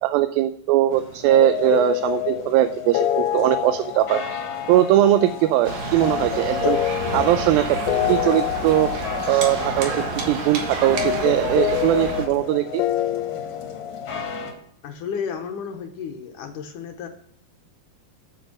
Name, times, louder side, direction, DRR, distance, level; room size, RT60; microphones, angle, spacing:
voice 1, 0.0-4.4 4.7-6.8 7.1-7.8 8.1-8.9 9.3-12.8, right 13 dB, 85° right, 11 dB, 2.3 m, -20 dB
sound 1, 0.9-14.5, left 4 dB, 40° left, 2.1 m, -40 dB
sound 2, 1.3-14.2, left 12 dB, 90° left, 2.5 m, -27 dB
sound 3, 5.6-12.3, right 4 dB, 55° right, 2.4 m, -29 dB
voice 2, 14.8-17.1, left 7 dB, 70° left, 4 dB, 2.2 m, -32 dB
9.1 x 7.9 x 5.9 m, 0.66 s
omnidirectional pair, 4.3 m